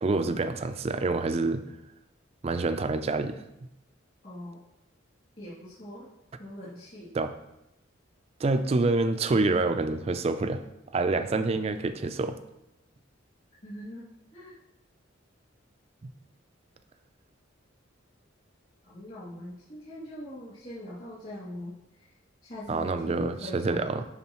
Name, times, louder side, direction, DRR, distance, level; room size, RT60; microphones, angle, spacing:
voice 1, 0.0-1.6 2.4-3.4 7.1-7.3 8.4-10.6 10.9-12.4 16.0-16.1 22.7-24.0, right 3 dB, 30° right, 9 dB, 0.3 m, -27 dB
voice 2, 4.2-4.6 5.4-6.1 6.4-7.1 13.6-14.1 14.3-14.6 18.8-22.1 22.4-23.9, left 1 dB, 45° left, -11 dB, 2.2 m, -41 dB
11.0 x 4.0 x 3.0 m, 0.89 s
head